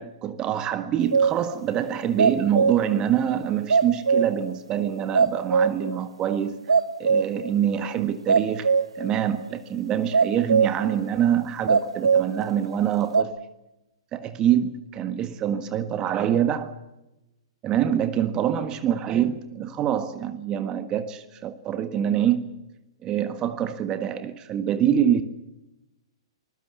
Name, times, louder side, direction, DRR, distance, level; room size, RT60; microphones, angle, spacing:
voice 1, 0.0-6.6 7.0-13.3 14.1-16.7 17.6-22.5 23.0-25.2, right 10 dB, 25° right, 1.5 m, -25 dB
sound 1, 1.1-1.4 2.0-3.0 3.3-3.4 3.7-4.5 4.8-4.9 5.1-5.9 6.3-6.4 6.7-7.5 7.8-7.9 8.3-9.1 9.4-9.5 10.1-10.9 11.7-12.3 13.1-13.2, right 5 dB, 80° right, 1.5 m, -21 dB
25.0 x 20.5 x 7.3 m
hypercardioid pair, 120°, 3 cm